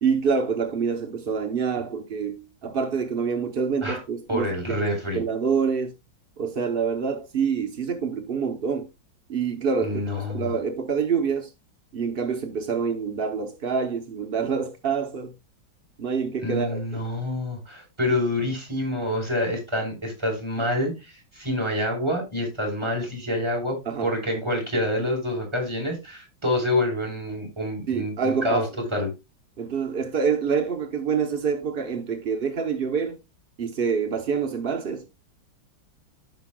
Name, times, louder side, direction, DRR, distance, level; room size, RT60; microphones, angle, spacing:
voice 1, 0.0-4.9 5.1-5.9 6.4-8.9 9.3-10.0 10.3-11.5 11.9-15.3 16.0-16.8 23.9-24.1 27.9-28.6 29.0-29.1 29.6-33.2 33.6-35.1, right 6 dB, 55° right, 0.6 m, -26 dB
voice 2, 4.3-5.2 9.8-10.5 16.4-29.1, left 1 dB, 15° right, 4.1 m, -27 dB
14.0 x 6.1 x 2.2 m
omnidirectional pair, 2.2 m